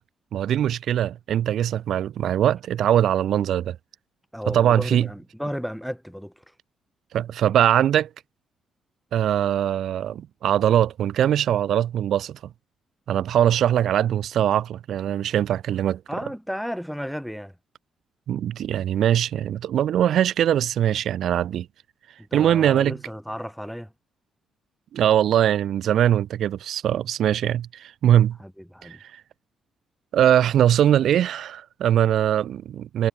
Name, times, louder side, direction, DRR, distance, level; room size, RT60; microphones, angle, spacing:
voice 1, 0.3-3.8 4.5-5.1 7.1-8.1 9.1-12.4 13.1-16.0 18.3-21.7 22.3-23.0 24.9-28.4 28.8-29.2 30.1-33.1, right 10 dB, 70° right, 1.5 m, -21 dB
voice 2, 4.3-6.3 16.1-17.5 22.3-23.9 28.4-29.0, equal, ahead, 3.3 m, -33 dB
cardioid pair, 90°, 0 cm